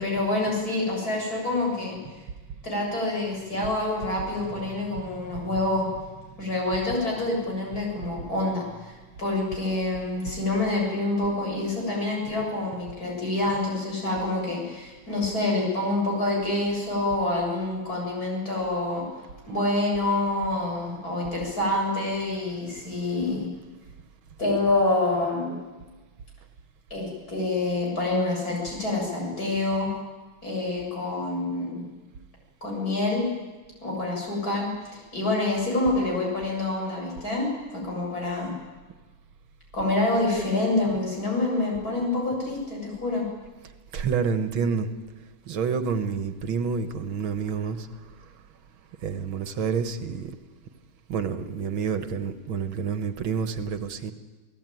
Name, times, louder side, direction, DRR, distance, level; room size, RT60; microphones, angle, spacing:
voice 1, 0.0-2.0 2.6-5.9 6.4-8.9 9.2-19.0 19.5-23.5 24.4-25.6 26.9-29.9 30.4-31.8 32.6-33.2 33.8-38.5 39.7-43.2, left 2 dB, 45° left, -1 dB, 7.9 m, -27 dB
voice 2, 4.6-5.3 43.9-44.9 45.5-47.9 49.0-50.3 51.1-54.1, right 6 dB, 80° right, 9 dB, 2.1 m, -28 dB
28.5 x 17.5 x 9.3 m, 1.3 s
omnidirectional pair, 2.2 m